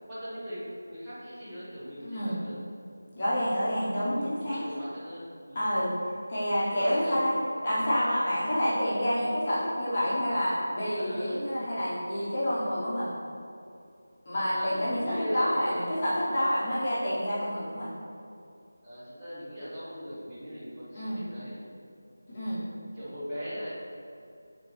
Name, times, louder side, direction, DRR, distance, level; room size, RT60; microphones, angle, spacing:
voice 1, 0.0-2.6 3.3-3.5 3.8-5.6 6.7-7.2 10.9-11.3 14.3-16.0 18.8-21.6 22.3-22.5 22.9-23.7, equal, 5° right, -19 dB, 1.5 m, -39 dB
voice 2, 2.0-2.3 3.2-4.6 5.5-5.9 6.3-7.3 7.6-13.1 14.2-17.9 20.9-21.2 22.3-22.6, equal, 30° left, -10 dB, 1.4 m, -28 dB
6.5 x 4.3 x 3.5 m, 2.5 s
figure-of-eight pair, 165°, 0 cm